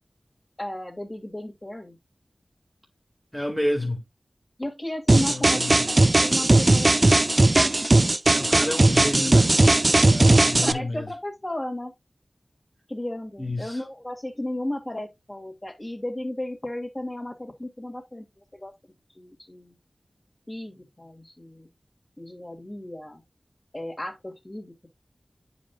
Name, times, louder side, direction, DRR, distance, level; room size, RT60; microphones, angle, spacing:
voice 1, 0.6-2.0 4.6-5.6 5.9-6.0 6.2-6.9 10.4-11.9 12.9-18.2 18.5-19.8 20.5-21.7 22.2-23.2 23.7-24.9, left 1 dB, 25° left, 2.3 m, -34 dB
voice 2, 3.3-4.0 5.3-5.9 8.3-9.5 10.1-11.1 13.4-13.8, left 1 dB, 5° left, 1.9 m, -30 dB
sound 1, 5.1-10.7, right 2 dB, 40° right, 0.4 m, -18 dB
8.8 x 5.1 x 2.3 m
wide cardioid pair, 50°, 0 cm